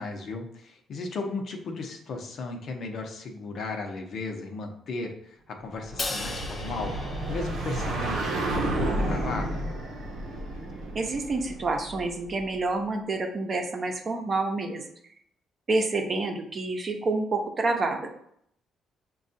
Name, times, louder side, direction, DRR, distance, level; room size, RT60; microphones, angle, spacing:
voice 1, 0.0-9.6, left 3 dB, 65° left, 3 dB, 0.7 m, -35 dB
sound 1, 5.8-12.4, right 1 dB, 80° right, 0.7 m, -31 dB
Crash cymbal, 6.0-8.4, left 3 dB, 30° left, 0.5 m, -37 dB
voice 2, 10.9-14.8 15.7-18.2, right 3 dB, 40° right, 3 dB, 0.7 m, -28 dB
6.1 x 2.3 x 2.6 m, 0.69 s
cardioid pair, 90°, 0 cm